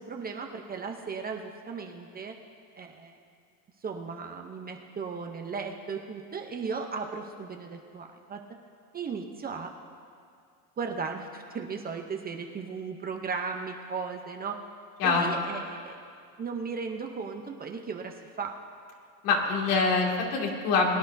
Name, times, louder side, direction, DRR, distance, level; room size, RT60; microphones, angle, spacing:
voice 1, 0.0-2.4 2.8-3.2 3.8-8.4 8.9-9.7 10.8-14.6 15.0-16.0 16.4-18.6, right 5 dB, 20° right, 3 dB, 0.7 m, -36 dB
voice 2, 15.0-15.4 19.2-21.0, left 4 dB, 70° left, -1 dB, 2.6 m, -25 dB
22.5 x 10.5 x 2.7 m, 2.3 s
supercardioid pair, 125°, 48 cm